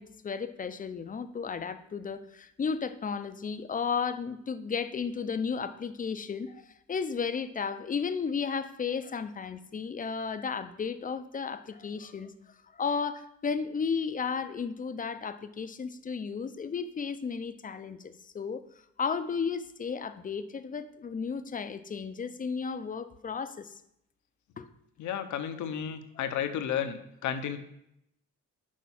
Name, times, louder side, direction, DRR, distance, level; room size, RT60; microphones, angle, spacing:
voice 1, 0.0-12.3 12.7-18.6 19.0-23.7 24.6-24.7, left 6 dB, 30° left, 11 dB, 0.5 m, -34 dB
voice 2, 25.0-27.6, left 9 dB, 75° left, 9 dB, 0.8 m, -32 dB
6.3 x 4.5 x 5.8 m, 0.78 s
cardioid pair, 90°, 30 cm